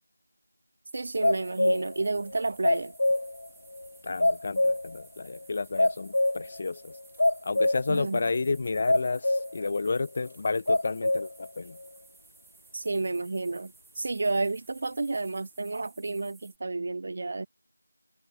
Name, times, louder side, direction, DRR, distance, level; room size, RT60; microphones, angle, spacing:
sound 1, 0.9-16.6, right 5 dB, ahead, 1.5 m, -58 dB
voice 1, 0.9-2.9 7.9-8.2 12.7-17.5, right 3 dB, 30° right, 2.1 m, -31 dB
sound 2, 1.2-2.0 2.3-3.5 3.7-3.9 4.2-5.0 5.3-5.4 5.8-6.6 6.9-8.0 8.3-8.4 8.9-9.7 10.0-10.1 10.7-11.4, left 2 dB, 45° left, 1.5 m, -25 dB
voice 2, 4.0-7.0 7.4-11.8, left 4 dB, 25° left, 0.7 m, -31 dB
figure-of-eight pair, 175°, 0 cm